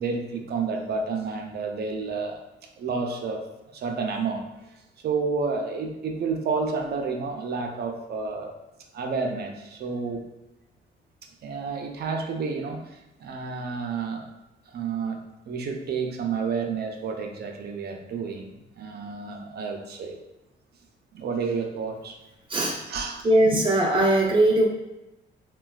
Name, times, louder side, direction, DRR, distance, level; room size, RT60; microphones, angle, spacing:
voice 1, 0.0-2.4 2.8-3.5 3.7-4.7 5.0-8.6 8.9-10.2 11.4-14.3 14.7-15.2 15.5-20.2 21.1-22.2 22.9-23.6, right 4 dB, 55° right, 3 dB, 0.6 m, -30 dB
voice 2, 23.2-24.7, right 1 dB, 25° right, -3 dB, 0.8 m, -20 dB
3.8 x 2.2 x 2.3 m, 0.98 s
cardioid pair, 90°, 20 cm